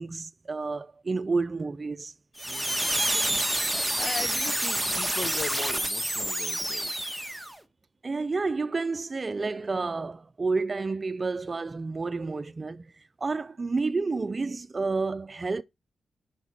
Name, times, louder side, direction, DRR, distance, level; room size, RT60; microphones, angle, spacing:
voice 1, 0.0-2.1 8.0-12.9 13.2-15.6, right 3 dB, 30° right, 0.4 m, -30 dB
sound 1, 2.4-7.6, right 1 dB, 5° right, 0.7 m, -28 dB
voice 2, 2.5-3.4 3.6-7.1, left 5 dB, 55° left, 0.8 m, -39 dB
5.8 x 4.1 x 4.9 m
wide cardioid pair, 110°, 0 cm